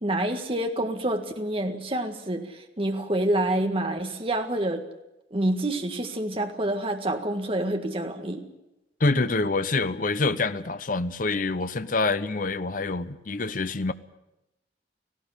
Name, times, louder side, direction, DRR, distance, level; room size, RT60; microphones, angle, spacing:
voice 1, 0.0-4.9 5.3-8.4, right 1 dB, 30° right, 5 dB, 1.7 m, -27 dB
voice 2, 9.0-13.9, left 3 dB, 45° left, 12 dB, 0.8 m, -26 dB
18.0 x 16.0 x 10.0 m, 0.91 s
head